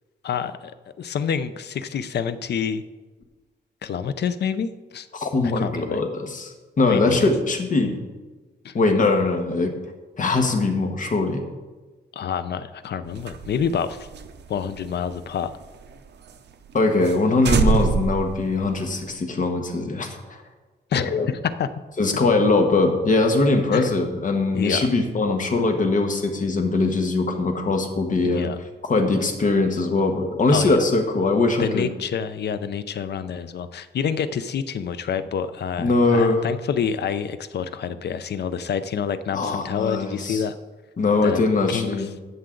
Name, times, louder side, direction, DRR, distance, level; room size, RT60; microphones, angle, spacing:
voice 1, 0.2-0.7 1.0-2.8 3.8-5.1 5.6-6.0 6.8-7.3 8.6-8.7 12.1-14.1 14.5-15.5 20.9-21.7 23.7-23.9 24.5-24.9 28.2-28.6 30.5-30.8 31.6-40.5 41.2-41.4 41.7-42.1, left 7 dB, 65° left, 13 dB, 0.6 m, -27 dB
voice 2, 5.1-8.0 8.7-9.7 10.2-11.4 16.7-20.4 20.9-21.3 22.0-28.5 28.9-31.9 35.8-36.4 39.3-40.4 41.0-42.1, left 3 dB, 45° left, 4 dB, 1.4 m, -21 dB
sound 1, 13.1-15.9 16.3-16.4 16.7-16.8 17.0-17.2 17.4-19.1, right 5 dB, 70° right, 0.7 m, -26 dB
13.5 x 7.9 x 3.8 m, 1.3 s
wide cardioid pair, 135°, 18 cm